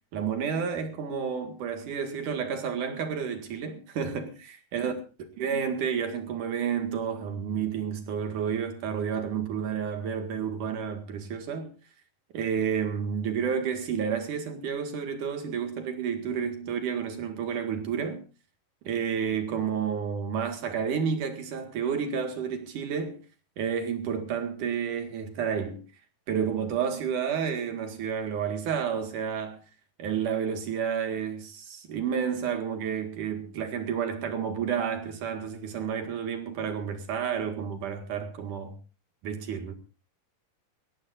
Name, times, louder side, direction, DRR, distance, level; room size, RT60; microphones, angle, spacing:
voice 1, 0.1-4.9 5.4-11.7 12.3-18.2 18.8-23.2 23.6-25.8 26.3-29.6 30.0-38.8 39.2-39.7, right 7 dB, 60° right, 3.2 m, -30 dB
22.0 x 16.5 x 2.6 m
omnidirectional pair, 4.5 m